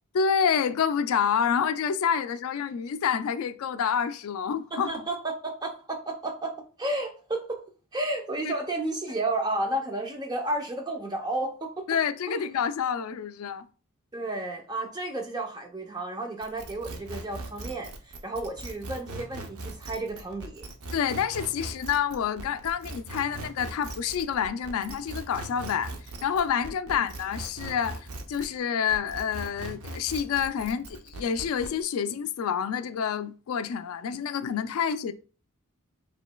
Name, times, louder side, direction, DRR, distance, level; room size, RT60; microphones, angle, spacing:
voice 1, 0.1-4.9 8.4-8.5 11.9-13.7 20.9-25.9 26.2-35.1, left 7 dB, 75° left, 0.3 m, -28 dB
voice 2, 4.7-6.5 6.8-7.6 7.9-11.8 12.3-12.4 14.1-20.6 26.9-27.0, right 2 dB, 20° right, 0.6 m, -32 dB
sound 1, 16.4-28.6 28.9-31.8, right 2 dB, 90° right, 0.7 m, -40 dB
5.0 x 3.1 x 2.2 m
head